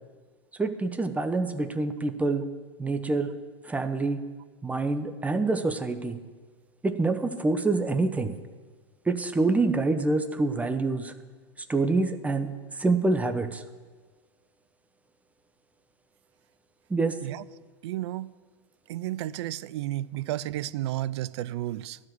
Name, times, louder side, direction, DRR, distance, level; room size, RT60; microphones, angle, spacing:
voice 1, 0.6-2.4 2.8-3.3 3.6-4.2 4.6-6.2 6.8-8.3 9.1-11.1 11.7-12.5 12.8-13.6 16.9-17.2, right 3 dB, 10° right, 0.7 m, -26 dB
voice 2, 17.8-18.3 18.9-22.0, right 14 dB, 65° right, 0.4 m, -32 dB
12.5 x 5.0 x 7.7 m
hypercardioid pair, 105°, 15 cm